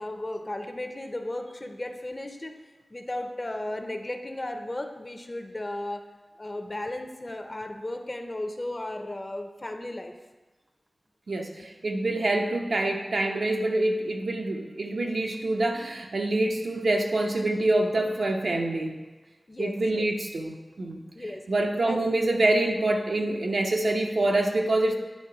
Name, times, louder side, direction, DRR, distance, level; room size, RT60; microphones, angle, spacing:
voice 1, 0.0-2.6 2.9-6.1 6.4-10.1 19.5-20.1 21.1-21.5 21.9-22.0, left 1 dB, 30° left, 6 dB, 0.6 m, -35 dB
voice 2, 11.3-19.0 19.6-21.0 21.5-24.9, right 2 dB, 80° right, 1 dB, 0.8 m, -26 dB
9.3 x 3.4 x 4.7 m, 1.2 s
wide cardioid pair, 80°, 0 cm